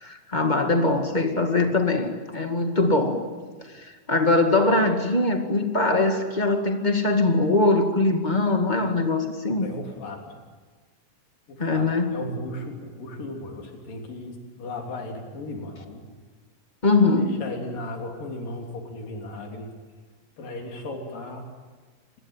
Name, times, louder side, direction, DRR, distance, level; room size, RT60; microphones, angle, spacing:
voice 1, 0.0-3.3 4.1-9.7 11.6-12.2 16.8-17.4, left 2 dB, 20° left, 1.5 m, -22 dB
voice 2, 9.6-10.4 11.5-16.0 17.2-19.7 20.4-21.5, left 1 dB, 85° left, 5.1 m, -36 dB
27.0 x 20.5 x 9.1 m
omnidirectional pair, 3.8 m